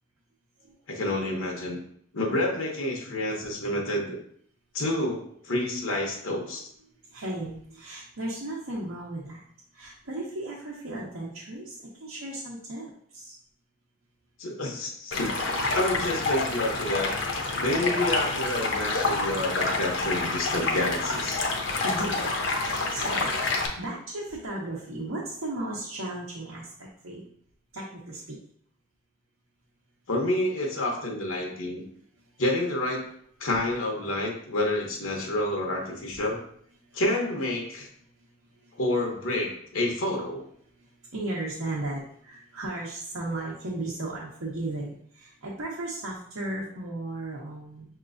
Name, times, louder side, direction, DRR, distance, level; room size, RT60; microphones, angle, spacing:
voice 1, 0.9-1.8 2.1-4.2 4.7-6.6 14.4-15.5 15.7-17.1 17.6-21.4 30.1-31.8 32.4-33.1 33.4-36.4 36.9-37.9 38.7-40.4, left 1 dB, 80° left, 0 dB, 0.9 m, -28 dB
voice 2, 7.1-9.4 9.7-11.7 12.0-12.9 13.1-13.3 14.8-14.9 21.7-22.3 22.6-26.6 27.0-27.2 27.7-28.4 41.1-47.9, right 2 dB, 90° right, -5 dB, 0.9 m, -35 dB
Stream, 15.1-23.7, left 3 dB, 60° left, 0.7 m, -28 dB
5.7 x 2.9 x 2.5 m, 0.63 s
head